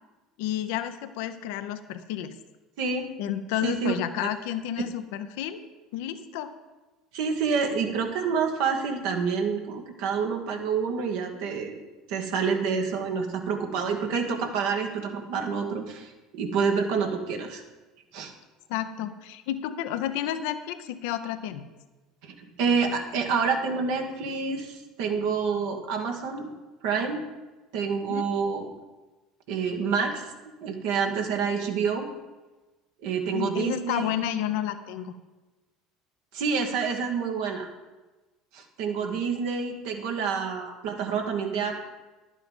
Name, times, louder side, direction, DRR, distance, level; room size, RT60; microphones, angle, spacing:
voice 1, 0.4-2.3 3.2-5.6 5.9-6.5 18.7-21.6 28.1-28.2 33.3-35.1, left 11 dB, 70° left, 10 dB, 0.8 m, -31 dB
voice 2, 2.8-3.1 3.6-4.3 7.1-11.8 12.1-17.6 18.1-18.3 22.2-26.5 26.8-27.2 27.7-28.7 29.5-30.2 30.6-32.1 33.0-34.1 36.3-37.7 38.5-41.7, right 5 dB, 70° right, 3 dB, 1.6 m, -28 dB
11.0 x 8.4 x 5.4 m, 1.2 s
hypercardioid pair, 75°, 0 cm